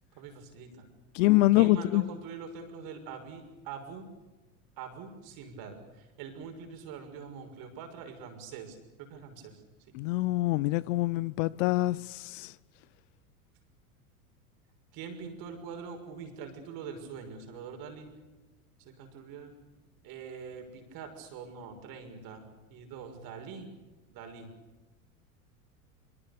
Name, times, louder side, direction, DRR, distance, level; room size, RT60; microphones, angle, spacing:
voice 1, 0.2-0.9 1.5-4.1 4.8-9.5 9.9-10.0 14.9-18.1 18.8-19.5 20.0-22.4 22.7-23.7 24.1-24.5, right 6 dB, 50° right, 6.3 m, -44 dB
voice 2, 1.1-2.0 9.9-12.5, left 18 dB, 55° left, 0.8 m, -25 dB
25.0 x 24.5 x 6.9 m
hypercardioid pair, 85°, 44 cm